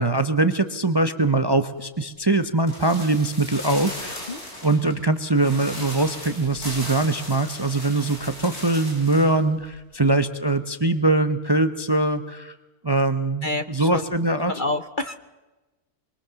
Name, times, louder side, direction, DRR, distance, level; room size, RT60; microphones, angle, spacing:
voice 1, 0.0-4.3 4.6-12.5 12.8-14.5, right 2 dB, 20° right, 10 dB, 0.8 m, -22 dB
sound 1, 2.7-9.4 9.6-9.7, left 1 dB, 85° left, 7.0 m, -37 dB
voice 2, 13.4-14.1 14.5-15.1, left 2 dB, 40° left, 9 dB, 0.9 m, -28 dB
25.5 x 23.0 x 7.0 m, 1.1 s
omnidirectional pair, 1.6 m